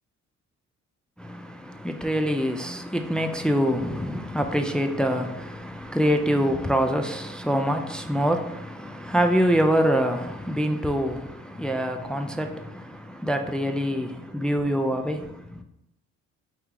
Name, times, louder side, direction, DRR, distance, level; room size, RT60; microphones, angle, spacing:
voice 1, 1.2-15.6, equal, 5° left, 0.4 m, -25 dB
4.5 x 3.0 x 3.7 m
cardioid pair, 90°, 30 cm